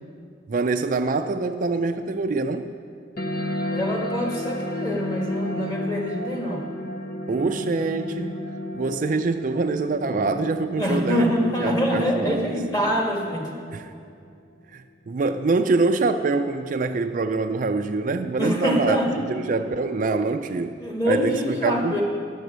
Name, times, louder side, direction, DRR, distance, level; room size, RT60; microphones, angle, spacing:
voice 1, 0.5-2.7 7.3-8.4 8.7-12.4 13.7-13.9 14.7-19.0 19.3-20.8 21.1-22.0, right 3 dB, 45° right, 7 dB, 0.4 m, -25 dB
sound 1, 3.2-14.1, left 1 dB, 55° left, 1.0 m, -33 dB
voice 2, 3.7-6.6 10.8-13.6 18.4-19.2 20.8-22.0, equal, 20° left, -1 dB, 1.8 m, -25 dB
11.0 x 7.3 x 8.0 m, 2.3 s
head